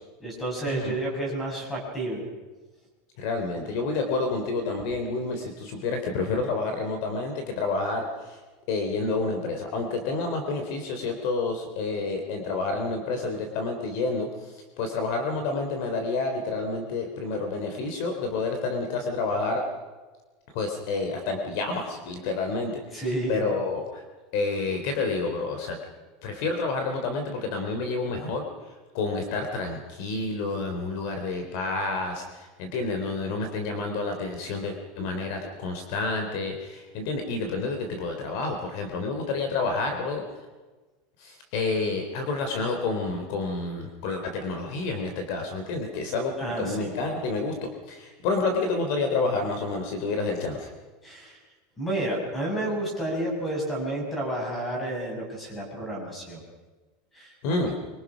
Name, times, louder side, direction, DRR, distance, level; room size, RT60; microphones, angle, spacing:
voice 1, 0.2-2.2 22.9-23.4 46.4-46.9 51.0-51.4 51.8-56.4 57.1-57.3, right 1 dB, 10° left, 0 dB, 6.4 m, -30 dB
voice 2, 3.2-8.4 8.7-19.6 20.5-24.0 24.3-25.8 26.2-28.4 28.9-40.2 41.2-50.7 57.4-57.8, left 3 dB, 50° left, 4 dB, 3.3 m, -29 dB
25.0 x 24.0 x 6.1 m, 1.2 s
supercardioid pair, 180°, 0 cm